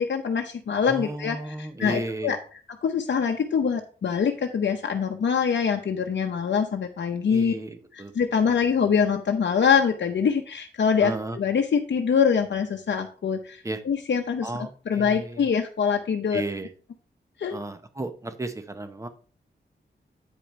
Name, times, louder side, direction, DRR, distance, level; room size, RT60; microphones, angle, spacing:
voice 1, 0.0-2.4 2.8-7.5 7.9-16.4 17.4-17.6, left 6 dB, 70° left, 4 dB, 0.8 m, -24 dB
voice 2, 0.8-2.4 7.3-8.1 11.0-11.4 13.6-13.8 14.4-15.5 16.3-16.7 17.5-19.1, right 2 dB, 15° right, 9 dB, 0.8 m, -34 dB
9.0 x 5.0 x 4.2 m, 0.41 s
wide cardioid pair, 150°, 19 cm